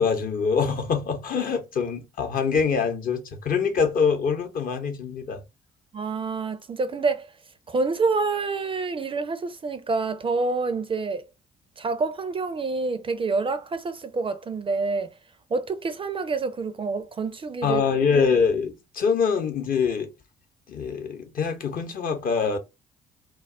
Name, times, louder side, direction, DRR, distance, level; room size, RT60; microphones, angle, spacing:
voice 1, 0.0-5.4 17.6-20.1 20.7-22.6, left 5 dB, 45° left, 0.7 m, -24 dB
voice 2, 5.9-7.3 7.7-11.2 11.8-15.1 15.5-17.8, right 4 dB, 30° right, 0.4 m, -27 dB
2.3 x 2.0 x 3.5 m
hypercardioid pair, 45°, 19 cm